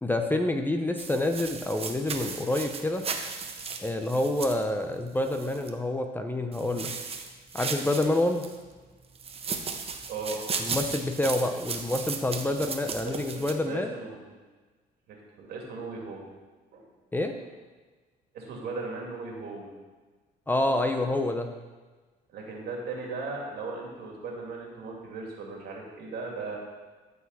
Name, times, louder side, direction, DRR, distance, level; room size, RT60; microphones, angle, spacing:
voice 1, 0.0-3.1 3.8-6.9 7.5-8.4 10.6-14.0 17.1-17.3 20.5-21.5, left 1 dB, 10° left, 5 dB, 0.7 m, -27 dB
sound 1, 1.0-5.7 6.5-8.6 9.2-13.5, right 5 dB, 35° right, 0.9 m, -36 dB
voice 2, 10.1-10.4 13.0-14.3 15.1-16.3 16.7-16.9 18.3-19.7 22.3-26.6, right 3 dB, 70° right, -1 dB, 2.5 m, -37 dB
14.5 x 4.8 x 4.1 m, 1.3 s
cardioid pair, 110°, 17 cm